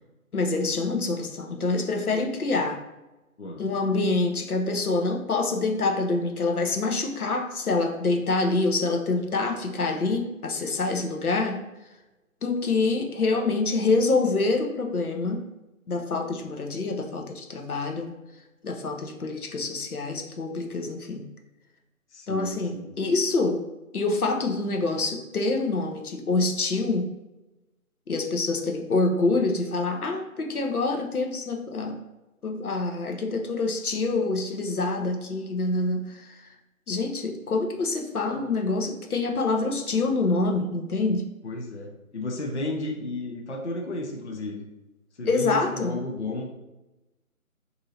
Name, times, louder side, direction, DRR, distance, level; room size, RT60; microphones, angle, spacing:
voice 1, 0.3-2.8 3.6-11.6 12.4-15.4 15.9-18.1 18.6-21.3 22.3-23.6 23.9-27.1 28.1-32.0 32.4-36.4 36.9-41.3 45.3-46.0, left 3 dB, 90° left, 3 dB, 0.7 m, -26 dB
voice 2, 3.4-3.7 22.1-22.9 33.1-33.2 41.4-44.7 45.2-46.5, left 2 dB, 55° left, 1 dB, 0.5 m, -33 dB
3.9 x 2.7 x 2.8 m, 1.0 s
figure-of-eight pair, 160°, 43 cm